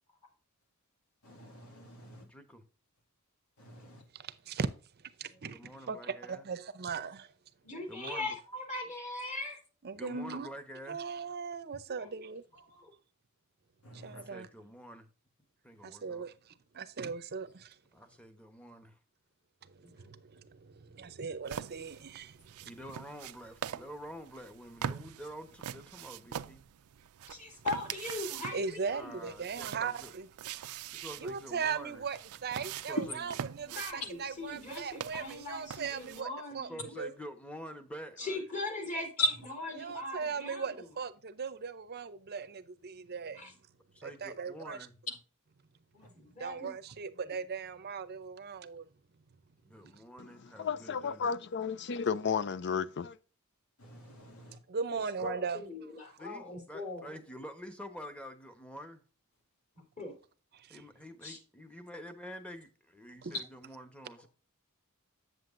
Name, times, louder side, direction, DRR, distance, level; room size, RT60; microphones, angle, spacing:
voice 1, 1.2-2.3 3.6-4.1 13.8-14.3 33.0-33.3 39.2-39.3 46.0-46.1 53.8-54.6, equal, 90° left, 2.3 m, -37 dB
voice 2, 2.2-2.6 5.5-6.5 7.9-8.4 9.9-11.0 14.1-15.1 15.6-16.3 17.9-19.0 22.6-26.6 28.9-30.1 30.9-32.0 32.9-33.2 36.7-38.4 43.9-44.9 49.6-51.3 56.2-59.0 60.7-64.3, equal, 5° left, 1.0 m, -47 dB
voice 3, 4.1-4.7 5.0-7.3 8.0-8.1 9.8-10.5 10.9-12.4 13.9-14.5 15.8-17.8 19.6-22.7 28.5-30.3 31.2-36.3 36.5-36.7 37.0-37.1 39.8-43.5 44.0-44.8 46.4-48.9 49.9-50.0 54.7-55.6 60.5-60.8 63.2-63.3, right 5 dB, 45° right, 0.6 m, -39 dB
voice 4, 7.6-9.6 12.7-12.9 27.3-29.2 32.9-33.0 33.6-37.0 38.2-39.1 39.8-40.6 43.4-43.5 45.9-46.7 47.2-47.3 54.9-57.1 59.7-60.1 61.2-61.4, left 2 dB, 35° left, 3.3 m, -40 dB
sound 1, 21.5-36.2, right 9 dB, 90° right, 0.4 m, -44 dB
voice 5, 50.6-53.2, left 6 dB, 55° left, 0.5 m, -33 dB
8.0 x 7.7 x 2.5 m
head